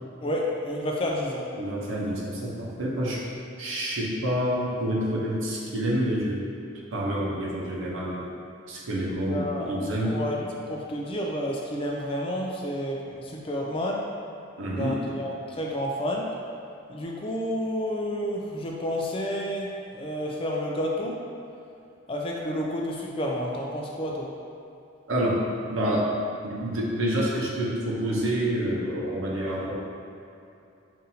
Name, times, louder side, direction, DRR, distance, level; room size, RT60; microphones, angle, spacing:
voice 1, 0.2-1.5 9.3-9.8 10.0-14.1 14.8-16.4 16.9-21.2 22.1-24.4, equal, 25° left, -2 dB, 0.3 m, -30 dB
voice 2, 1.6-3.2 3.6-6.5 6.9-8.2 8.7-10.2 14.6-15.0 25.1-25.4 25.7-26.2 26.4-29.7, equal, 85° right, -5 dB, 0.7 m, -28 dB
5.4 x 2.6 x 2.7 m, 2.7 s
head